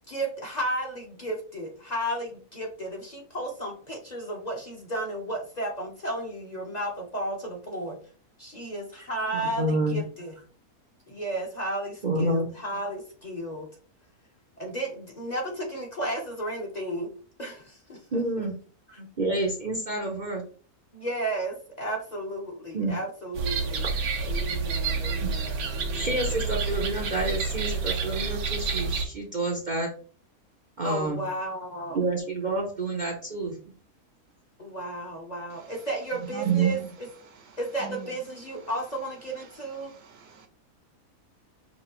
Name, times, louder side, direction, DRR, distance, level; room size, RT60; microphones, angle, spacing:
voice 1, 0.1-8.0 8.4-10.3 11.1-13.7 14.6-17.1 17.4-18.0 18.4-18.5 18.9-19.1 20.9-23.9 24.2-26.4 30.8-32.0 34.6-37.1 37.6-39.9, right 1 dB, 35° left, 0.9 m, -33 dB
voice 2, 9.3-10.0 12.0-12.5 18.1-18.5 19.2-20.4 22.7-22.9 25.9-29.9 30.8-31.2 31.9-33.5 36.4-36.7, right 2 dB, 40° right, 0.7 m, -28 dB
sound 1, 23.3-29.0, right 4 dB, 85° right, 1.2 m, -29 dB
voice 3, 36.3-36.9 37.9-38.0 40.1-40.5, right 8 dB, 70° right, 0.9 m, -36 dB
5.3 x 2.9 x 3.0 m
omnidirectional pair, 1.5 m